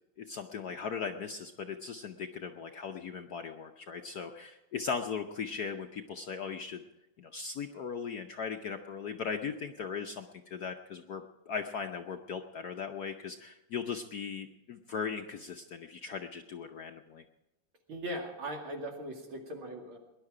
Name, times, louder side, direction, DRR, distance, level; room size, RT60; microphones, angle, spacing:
voice 1, 0.2-6.8 7.2-17.2, left 6 dB, 65° left, 5 dB, 1.0 m, -38 dB
voice 2, 17.9-20.0, right 1 dB, 70° right, 1 dB, 3.2 m, -39 dB
20.0 x 11.0 x 4.9 m, 0.94 s
omnidirectional pair, 2.4 m